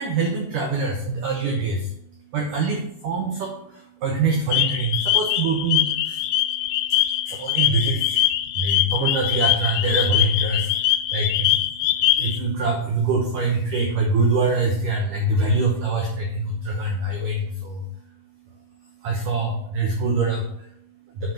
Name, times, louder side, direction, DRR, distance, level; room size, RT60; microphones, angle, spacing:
voice 1, 0.0-21.3, right 3 dB, 90° right, 1 dB, 1.8 m, -25 dB
sound 1, 4.5-12.4, left 13 dB, 85° left, 2.9 m, -22 dB
7.4 x 6.0 x 5.9 m, 0.72 s
omnidirectional pair, 5.4 m